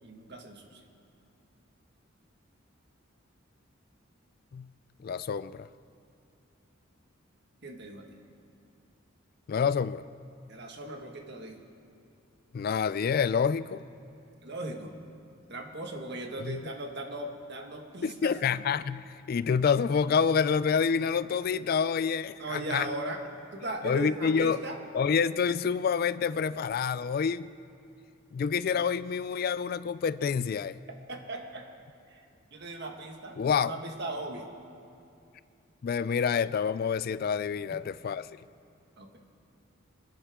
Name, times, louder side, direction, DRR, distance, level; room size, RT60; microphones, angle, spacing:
voice 1, 0.0-0.8 7.6-8.1 10.5-11.6 14.4-14.9 15.5-18.3 22.4-23.2 23.5-24.8 31.1-31.6 32.1-32.2 32.5-33.4 33.6-34.5 39.0-39.2, right 2 dB, 55° right, 2 dB, 1.7 m, -38 dB
voice 2, 5.0-5.7 9.5-10.0 12.5-13.8 16.4-16.6 18.0-22.9 23.8-24.6 24.9-27.5 28.3-30.8 33.4-33.7 35.8-38.3, left 6 dB, 50° left, 16 dB, 0.3 m, -27 dB
27.0 x 10.0 x 3.7 m, 2.6 s
head